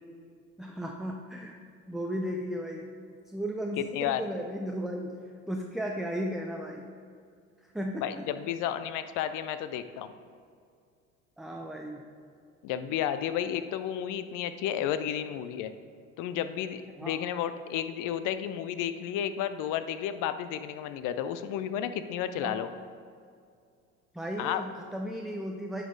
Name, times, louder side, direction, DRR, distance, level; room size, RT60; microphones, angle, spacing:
voice 1, 0.6-1.6 1.9-2.9 3.3-5.2 5.5-6.8 7.6-8.2 11.4-12.0 17.0-17.1 22.4-22.6 24.1-25.8, equal, ahead, 1 dB, 0.5 m, -35 dB
voice 2, 3.8-4.2 8.0-10.1 12.6-15.7 16.2-22.7 24.4-24.6, left 10 dB, 55° left, 11 dB, 0.5 m, -32 dB
10.0 x 4.0 x 3.9 m, 2.3 s
hypercardioid pair, 70°, 38 cm